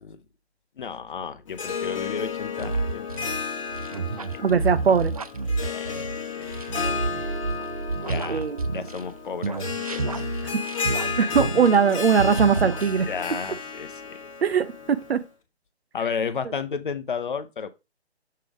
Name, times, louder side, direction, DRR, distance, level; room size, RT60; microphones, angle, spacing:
voice 1, 0.8-3.1 5.6-6.5 8.0-8.5 8.7-9.6 9.9-10.1 11.4-11.5 13.1-14.2 15.9-17.7, left 6 dB, 50° left, 0.7 m, -32 dB
Harp, 1.5-15.2, left 6 dB, 30° left, 1.0 m, -33 dB
sound 1, 2.6-9.1 9.4-11.9 12.2-13.2, right 3 dB, 35° right, 0.4 m, -30 dB
voice 2, 4.4-5.1 8.3-8.7 10.5-10.6 11.2-13.1 14.4-15.2, right 6 dB, 65° right, 0.7 m, -21 dB
6.7 x 3.4 x 4.9 m
figure-of-eight pair, 145°, 33 cm